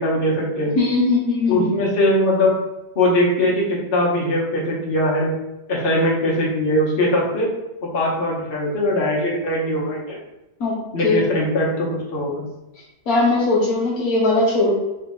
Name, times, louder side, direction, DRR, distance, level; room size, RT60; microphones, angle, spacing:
voice 1, 0.0-0.7 1.5-2.5 2.9-5.3 5.7-7.5 7.8-10.2 10.9-12.4, left 1 dB, 40° left, -4 dB, 1.2 m, -21 dB
voice 2, 0.8-1.7 10.6-10.8 11.0-11.3 13.1-14.7, left 3 dB, 65° left, -4 dB, 1.1 m, -19 dB
3.8 x 3.4 x 3.7 m, 0.97 s
omnidirectional pair, 1.8 m